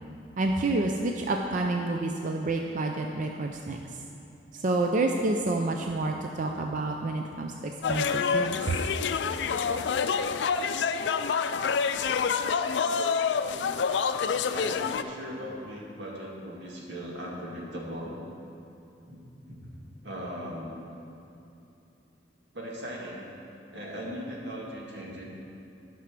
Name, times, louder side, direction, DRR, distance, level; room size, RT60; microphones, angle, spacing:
voice 1, 0.4-4.0 4.5-8.8, right 2 dB, 50° right, 2 dB, 0.5 m, -29 dB
sound 1, 7.8-15.0, left 6 dB, 80° left, 0.4 m, -27 dB
voice 2, 14.5-18.1 19.1-19.2 19.5-19.6 20.0-20.8 22.5-23.3 23.7-25.2, equal, 85° right, -3 dB, 2.0 m, -38 dB
11.5 x 6.1 x 6.0 m, 2.7 s
head